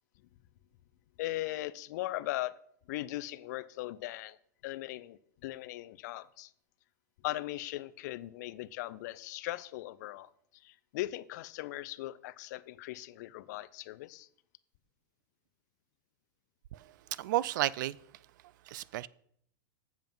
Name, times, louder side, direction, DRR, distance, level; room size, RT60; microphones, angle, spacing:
voice 1, 1.2-2.5 2.9-4.4 4.6-6.5 7.2-10.3 10.6-14.3, left 16 dB, 60° left, 0.5 m, -39 dB
voice 2, 16.7-18.0 18.7-19.1, right 15 dB, 65° right, 0.4 m, -33 dB
7.4 x 7.3 x 5.4 m
supercardioid pair, 145°, 11 cm